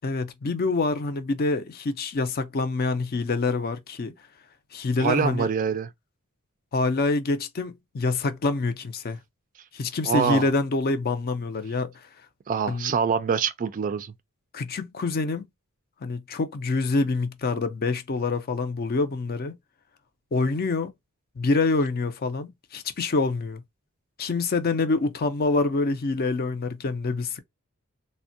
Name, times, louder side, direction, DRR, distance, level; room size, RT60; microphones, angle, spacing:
voice 1, 0.0-4.1 4.7-5.5 6.7-9.2 9.7-11.9 12.7-12.9 14.5-15.4 16.0-19.6 20.3-20.9 21.4-23.6 24.2-27.4, left 3 dB, 45° left, 0.5 m, -26 dB
voice 2, 5.0-5.9 10.1-10.5 12.5-14.1, right 6 dB, 35° right, 0.3 m, -25 dB
3.5 x 2.1 x 2.6 m
head